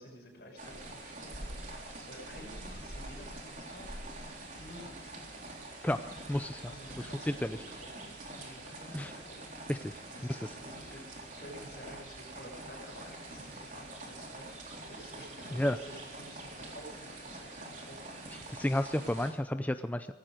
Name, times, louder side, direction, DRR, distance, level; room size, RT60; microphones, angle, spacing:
voice 1, 0.0-1.6 2.0-3.8 4.6-5.3 6.7-8.1 8.4-9.5 10.2-11.0 11.4-14.6 14.9-18.0, equal, 60° left, 0 dB, 6.1 m, -51 dB
sound 1, 0.6-19.3, right 2 dB, 45° right, 3.7 m, -45 dB
voice 2, 6.3-6.6 7.0-7.6 8.9-9.1 9.7-10.5 15.5-15.8 18.5-20.1, left 1 dB, 10° left, 9 dB, 0.4 m, -32 dB
17.5 x 15.5 x 5.1 m, 1.2 s
head